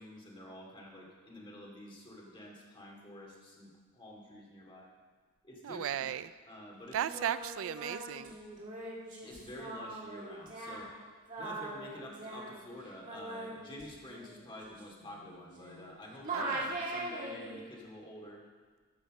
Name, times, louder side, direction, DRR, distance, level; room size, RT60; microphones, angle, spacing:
voice 1, 0.0-4.9 5.4-6.1 6.5-7.0 9.2-10.9 11.4-18.4, left 1 dB, 20° left, -2 dB, 2.4 m, -49 dB
voice 2, 5.6-6.3 6.9-8.4 16.3-16.7, right 10 dB, 60° right, 15 dB, 0.3 m, -36 dB
Singing, 6.9-15.9 16.2-17.6, right 2 dB, 35° right, 2.7 m, -41 dB
14.0 x 6.6 x 6.3 m, 1.5 s
head